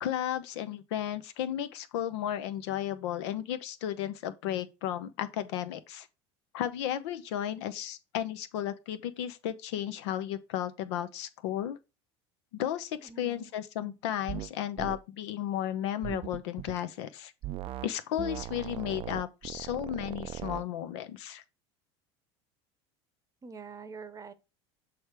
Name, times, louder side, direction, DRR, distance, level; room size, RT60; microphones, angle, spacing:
voice 1, 0.0-6.1 6.5-11.8 12.5-17.3 17.8-21.4, left 11 dB, 80° left, 0.7 m, -34 dB
voice 2, 13.0-13.5 13.8-14.0 23.4-24.3, right 5 dB, 25° right, 0.8 m, -45 dB
sound 1, 14.3-14.5 14.8-15.0 16.0-16.8 17.4-17.9 18.2-20.6, right 13 dB, 40° right, 0.4 m, -39 dB
6.4 x 3.4 x 4.4 m
supercardioid pair, 105°, 14 cm